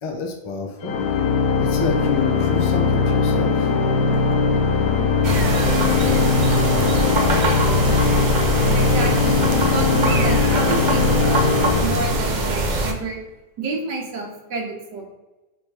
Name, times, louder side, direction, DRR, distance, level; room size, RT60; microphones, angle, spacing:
voice 1, 0.0-0.9 1.6-3.7, left 4 dB, 35° left, 3 dB, 0.4 m, -28 dB
Organ, 0.8-12.6, left 5 dB, 65° left, 1.0 m, -20 dB
sound 1, 1.8-11.1, right 1 dB, 30° right, 0.8 m, -33 dB
sound 2, 5.2-12.9, right 2 dB, 60° right, 0.4 m, -23 dB
voice 2, 8.7-13.2 13.6-15.0, right 3 dB, 80° right, 0 dB, 1.8 m, -29 dB
7.7 x 3.5 x 3.5 m, 1.1 s
omnidirectional pair, 1.8 m